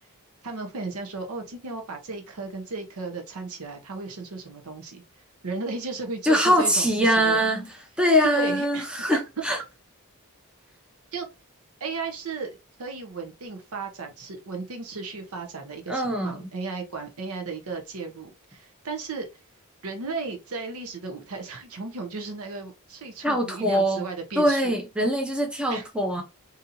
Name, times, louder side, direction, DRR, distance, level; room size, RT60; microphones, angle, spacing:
voice 1, 0.4-7.4 8.2-8.9 11.1-11.3 11.8-12.5 12.8-19.3 19.8-24.7 25.7-25.8, right 4 dB, 80° right, 0.8 m, -35 dB
voice 2, 6.2-7.7 8.0-9.6 15.9-16.5 23.2-24.0 24.4-26.2, equal, 5° right, 0.6 m, -23 dB
4.1 x 2.7 x 2.6 m
head